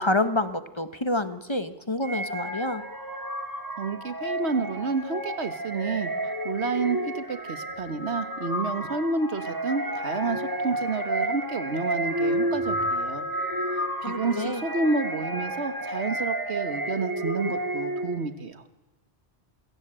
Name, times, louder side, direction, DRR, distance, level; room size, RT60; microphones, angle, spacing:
voice 1, 0.0-2.8 14.0-14.6, left 2 dB, 25° left, 12 dB, 1.1 m, -28 dB
sound 1, 2.0-18.3, right 1 dB, 20° right, 2.1 m, -31 dB
voice 2, 3.8-13.3 14.0-18.7, right 4 dB, 90° right, 12 dB, 1.7 m, -30 dB
29.0 x 16.0 x 9.0 m, 1.0 s
omnidirectional pair, 1.1 m